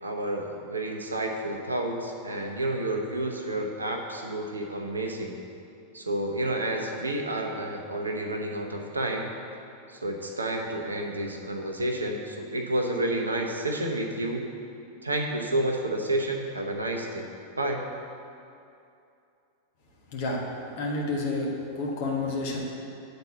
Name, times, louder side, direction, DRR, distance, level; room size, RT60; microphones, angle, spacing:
voice 1, 0.0-5.4 5.9-9.3 9.9-14.5 15.0-17.2 17.6-17.9, right 1 dB, 80° right, 3 dB, 0.8 m, -30 dB
voice 2, 20.8-22.6, left 2 dB, 50° left, -1 dB, 1.4 m, -29 dB
8.9 x 4.1 x 7.0 m, 2.6 s
figure-of-eight pair, 90°, 0 cm